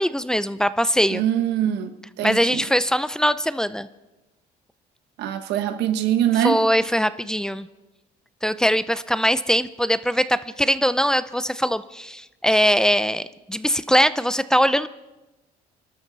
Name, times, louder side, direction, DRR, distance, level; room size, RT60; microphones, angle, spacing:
voice 1, 0.0-1.2 2.2-3.9 6.4-7.7 8.4-14.9, equal, 5° left, 0.5 m, -21 dB
voice 2, 1.1-2.6 5.2-6.6, right 10 dB, 85° right, 1.2 m, -23 dB
27.5 x 12.5 x 4.1 m
cardioid pair, 110°, 17 cm